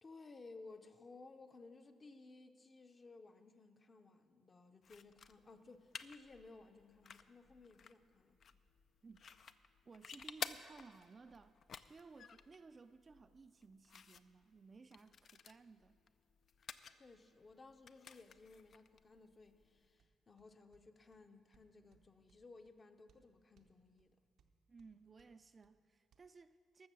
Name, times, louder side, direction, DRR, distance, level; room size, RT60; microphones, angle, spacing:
voice 1, 0.0-8.4 16.9-24.2, left 3 dB, 35° left, 0.7 m, -59 dB
sound 1, 4.8-20.0, left 6 dB, 55° left, 0.4 m, -54 dB
voice 2, 9.8-11.6 11.9-16.0 24.7-26.9, right 4 dB, 35° right, 0.4 m, -59 dB
sound 2, 19.6-26.2, right 5 dB, 75° right, 0.8 m, -77 dB
13.5 x 6.5 x 6.8 m
cardioid pair, 90°, 0 cm